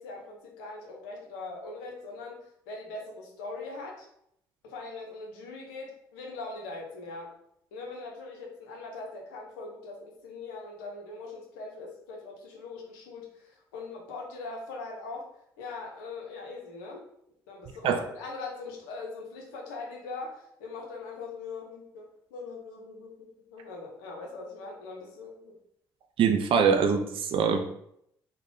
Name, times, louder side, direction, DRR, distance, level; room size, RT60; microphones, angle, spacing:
voice 1, 0.0-4.1 4.6-7.3 7.7-15.3 15.6-17.0 17.5-25.5, left 3 dB, 80° left, 0 dB, 0.7 m, -41 dB
voice 2, 26.2-27.6, right 6 dB, 55° right, 6 dB, 0.4 m, -23 dB
3.2 x 2.2 x 3.7 m, 0.73 s
hypercardioid pair, 50°, 11 cm